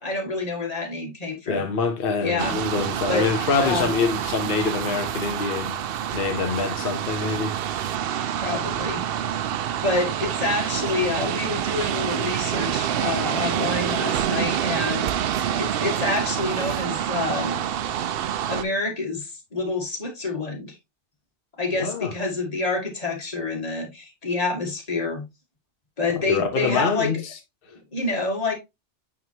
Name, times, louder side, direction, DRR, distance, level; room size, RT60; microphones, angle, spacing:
voice 1, 0.0-1.7 2.2-2.6 3.1-3.3 3.6-3.9 8.4-9.0 9.8-17.6 18.5-20.8 21.6-25.3 26.0-27.1 27.7-28.5, left 3 dB, 35° left, 1.9 m, -27 dB
voice 2, 1.5-5.8 6.1-7.5 21.8-22.1 26.2-27.2, left 4 dB, 55° left, 1.1 m, -25 dB
sound 1, 2.4-18.6, right 10 dB, 65° right, 0.7 m, -27 dB
9.2 x 3.7 x 2.8 m
omnidirectional pair, 1.2 m